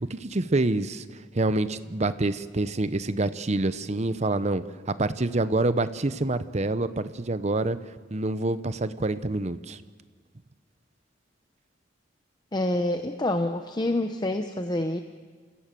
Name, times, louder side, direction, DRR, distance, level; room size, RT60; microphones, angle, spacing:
voice 1, 0.0-1.0 1.3-7.8 8.1-9.8, right 2 dB, 35° right, 13 dB, 0.8 m, -27 dB
voice 2, 12.5-15.0, left 1 dB, 20° left, 7 dB, 0.7 m, -27 dB
29.0 x 15.5 x 7.5 m, 1.5 s
head